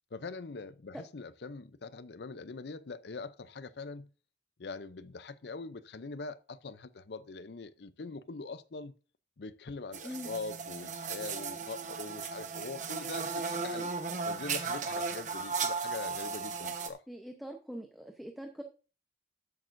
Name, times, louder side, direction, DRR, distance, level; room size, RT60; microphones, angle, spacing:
voice 1, 0.1-4.1 4.6-8.9 9.4-13.9 14.3-17.0, left 3 dB, 70° left, 0.6 m, -43 dB
sound 1, 9.9-16.9, right 5 dB, 40° right, 1.0 m, -36 dB
voice 2, 17.1-18.6, equal, ahead, 0.8 m, -43 dB
12.5 x 8.7 x 2.6 m
head